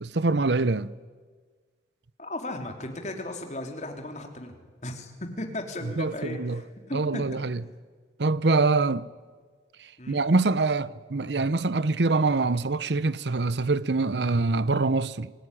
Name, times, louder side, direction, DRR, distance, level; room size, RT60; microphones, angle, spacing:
voice 1, 0.0-0.9 6.0-6.6 6.9-7.6 8.2-9.1 10.1-15.3, right 3 dB, 75° right, 0.8 m, -24 dB
voice 2, 2.2-4.5 4.8-7.4 10.0-10.2, left 1 dB, 40° left, 3.5 m, -36 dB
28.0 x 20.5 x 10.0 m
head